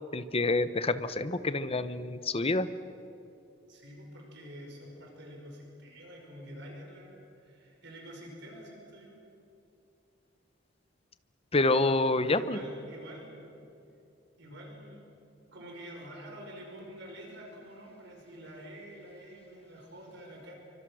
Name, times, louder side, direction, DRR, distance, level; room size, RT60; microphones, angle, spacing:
voice 1, 0.1-2.7 11.5-12.6, left 2 dB, 30° left, 13 dB, 0.9 m, -27 dB
voice 2, 3.7-9.1 12.3-13.3 14.4-15.1 15.5-20.5, equal, 65° right, 0 dB, 5.7 m, -47 dB
28.5 x 25.0 x 6.4 m, 2.8 s
head